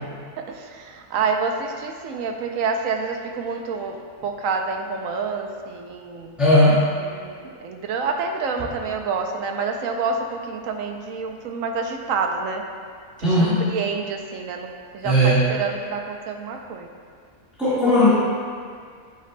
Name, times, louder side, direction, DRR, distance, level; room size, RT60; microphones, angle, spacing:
voice 1, 0.4-6.4 7.0-12.7 13.2-16.9 17.9-18.0, right 4 dB, 70° right, 4 dB, 1.0 m, -28 dB
voice 2, 6.4-6.9 13.2-13.6 15.0-15.4 17.6-18.1, equal, ahead, -13 dB, 1.6 m, -17 dB
12.0 x 4.9 x 2.2 m, 2.1 s
omnidirectional pair, 1.5 m